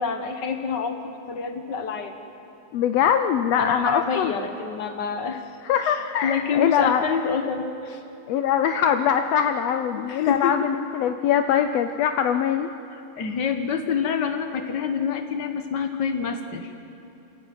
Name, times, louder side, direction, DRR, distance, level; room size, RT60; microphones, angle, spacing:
voice 1, 0.0-2.1 3.6-8.0 10.0-10.5 12.9-16.7, left 6 dB, 65° left, 7 dB, 1.1 m, -27 dB
voice 2, 2.7-4.3 5.6-7.0 8.3-12.7, left 8 dB, 80° left, 8 dB, 1.4 m, -22 dB
27.5 x 14.5 x 9.3 m, 3.0 s
omnidirectional pair, 3.7 m